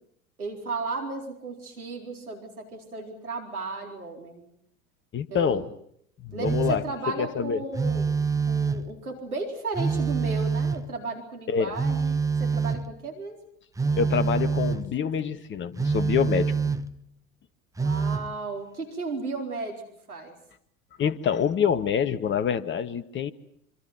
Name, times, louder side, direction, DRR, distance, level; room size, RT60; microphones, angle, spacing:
voice 1, 0.4-4.5 5.3-5.6 6.3-8.2 8.5-13.4 17.8-19.8 20.1-20.4, right 3 dB, 85° right, 4.4 m, -35 dB
voice 2, 5.1-5.7 6.2-6.8 7.2-7.6 11.5-11.7 14.0-16.7 21.0-23.3, left 7 dB, 25° left, 1.5 m, -26 dB
Telephone, 6.4-7.0 7.7-9.0 9.7-11.0 11.8-13.0 13.8-14.9 15.8-17.0 17.8-18.3, right 5 dB, 10° right, 1.0 m, -26 dB
27.0 x 25.0 x 6.0 m
figure-of-eight pair, 80°, 43 cm